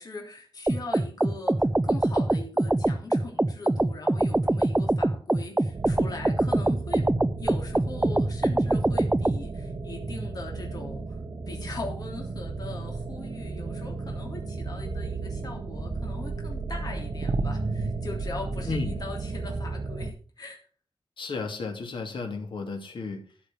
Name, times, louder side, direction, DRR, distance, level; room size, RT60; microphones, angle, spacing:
voice 1, 0.0-7.1 7.4-11.2 11.5-20.6, left 3 dB, 45° left, 1 dB, 3.2 m, -40 dB
sound 1, 0.7-9.4, right 2 dB, 15° right, 0.5 m, -24 dB
sound 2, 5.7-20.1, right 3 dB, 55° right, 1.3 m, -33 dB
voice 2, 18.7-19.0 21.2-23.2, left 3 dB, 70° left, 3 dB, 2.9 m, -33 dB
13.0 x 6.6 x 6.2 m, 0.39 s
wide cardioid pair, 160°, 9 cm